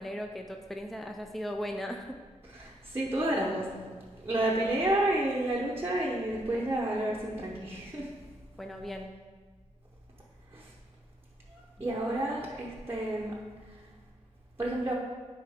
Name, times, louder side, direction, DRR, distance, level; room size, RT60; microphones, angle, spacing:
voice 1, 0.0-2.1 8.6-9.1, equal, ahead, 4 dB, 0.4 m, -37 dB
voice 2, 2.4-8.1 10.5-10.7 11.5-13.3 13.7-13.8 14.6-14.9, right 1 dB, 20° right, -4 dB, 0.8 m, -31 dB
8.8 x 4.7 x 3.5 m, 1.4 s
wide cardioid pair, 100°, 13 cm